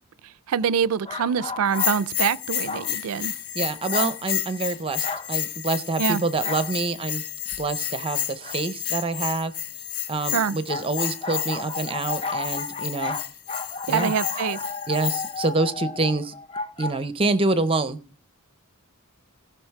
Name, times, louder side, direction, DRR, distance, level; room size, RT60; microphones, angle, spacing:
voice 1, 0.5-3.3 6.0-6.2 10.3-10.6 13.9-14.6, right 7 dB, 80° right, 0.4 m, -24 dB
sound 1, 1.0-2.0 2.7-3.0 3.9-4.2 5.0-5.3 6.4-6.7 8.4-8.6 10.7-16.9, left 3 dB, 25° left, 0.6 m, -33 dB
Bell, 1.7-15.4, left 11 dB, 75° left, 0.9 m, -31 dB
voice 2, 3.5-7.2 7.6-9.5 10.1-13.2 13.9-14.1 14.9-16.3 16.8-18.0, right 3 dB, 25° right, 0.6 m, -26 dB
17.0 x 5.9 x 4.6 m
head